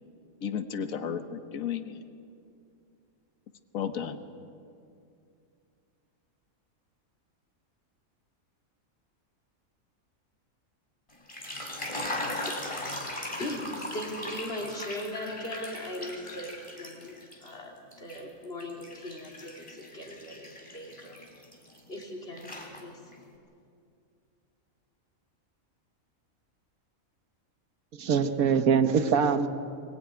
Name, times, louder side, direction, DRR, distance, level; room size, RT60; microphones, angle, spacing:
voice 1, 0.4-2.0 3.7-4.2, left 7 dB, 75° left, 8 dB, 1.5 m, -33 dB
sound 1, 11.1-17.5 17.9-22.0 22.4-23.2, left 1 dB, 20° left, 3.2 m, -39 dB
voice 2, 11.9-13.0 13.4-17.1 17.4-21.2 21.9-22.5 22.8-23.1, left 1 dB, 45° left, 2 dB, 3.2 m, -39 dB
voice 3, 27.9-29.5, right 6 dB, 90° right, 9 dB, 1.5 m, -23 dB
22.0 x 21.0 x 9.4 m, 2.5 s
omnidirectional pair, 1.5 m